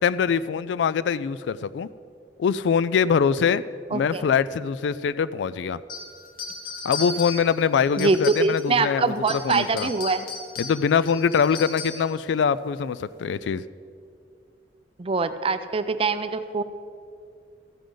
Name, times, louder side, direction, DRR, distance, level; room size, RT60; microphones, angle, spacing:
voice 1, 0.0-1.9 2.4-3.6 3.9-5.8 6.8-9.9 10.6-13.6, left 6 dB, 80° left, 17 dB, 0.3 m, -23 dB
voice 2, 3.9-4.2 8.0-10.3 15.0-16.6, right 4 dB, 35° right, 11 dB, 0.5 m, -24 dB
sound 1, 5.9-8.8 9.2-12.1, left 4 dB, 55° left, 1.5 m, -36 dB
14.0 x 10.0 x 3.9 m, 2.4 s
head